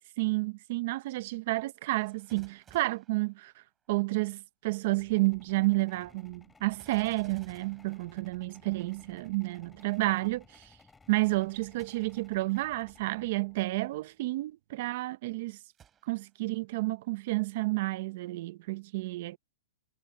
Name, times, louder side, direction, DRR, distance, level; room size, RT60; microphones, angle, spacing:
voice 1, 0.2-3.5 3.9-10.7 11.1-15.6 16.1-19.4, right 21 dB, 45° right, 0.9 m, -30 dB
Gunshot gunfire, 2.0-4.0 6.7-8.8 11.7-12.4 13.0-13.1 15.7-16.5 17.0-17.1, right 8 dB, 15° right, 6.5 m, -59 dB
sound 1, 4.8-14.2, left 4 dB, 10° left, 6.5 m, -60 dB
hypercardioid pair, 160°, 0 cm